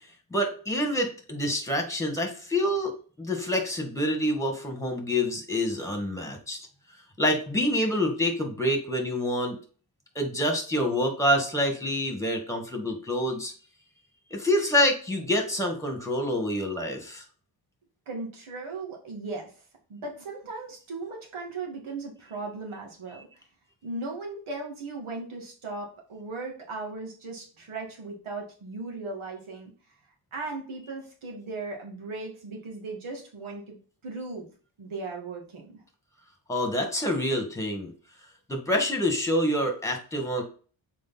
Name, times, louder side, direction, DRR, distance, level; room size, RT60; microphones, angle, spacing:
voice 1, 0.3-2.9 3.2-6.6 7.2-9.6 10.2-13.5 14.3-17.2 36.5-37.9 38.5-40.4, left 1 dB, 5° left, 3 dB, 1.9 m, -27 dB
voice 2, 18.1-19.5 19.9-23.2 23.8-29.7 30.3-33.8 34.0-34.5 34.8-35.8, right 3 dB, 80° right, 0 dB, 2.5 m, -37 dB
6.9 x 4.8 x 4.2 m, 0.39 s
wide cardioid pair, 120°, 48 cm